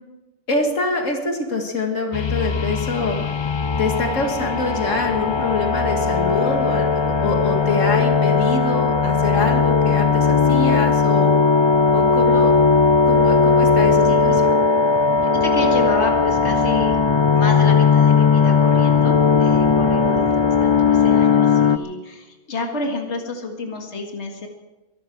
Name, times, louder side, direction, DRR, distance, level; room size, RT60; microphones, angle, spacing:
voice 1, 0.5-3.2 3.8-11.3 11.9-12.5 13.1-14.6, left 3 dB, 90° left, 3 dB, 2.3 m, -24 dB
sound 1, 2.1-21.8, left 5 dB, 40° left, 0.4 m, -17 dB
voice 2, 15.2-17.0 17.3-24.5, left 2 dB, 60° left, 2 dB, 2.2 m, -29 dB
23.0 x 12.5 x 4.6 m, 1.1 s
omnidirectional pair, 1.3 m